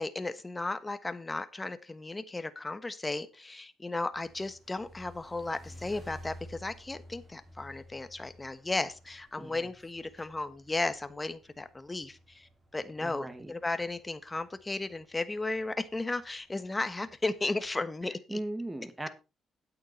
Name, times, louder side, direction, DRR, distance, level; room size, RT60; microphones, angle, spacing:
voice 1, 0.0-18.4, left 2 dB, 20° left, 1.2 m, -35 dB
sound 1, 4.1-17.8, equal, 35° right, 4.0 m, -54 dB
voice 2, 13.0-13.5 18.3-19.1, right 1 dB, 15° right, 2.0 m, -38 dB
9.7 x 8.7 x 4.3 m
cardioid pair, 90°, 0 cm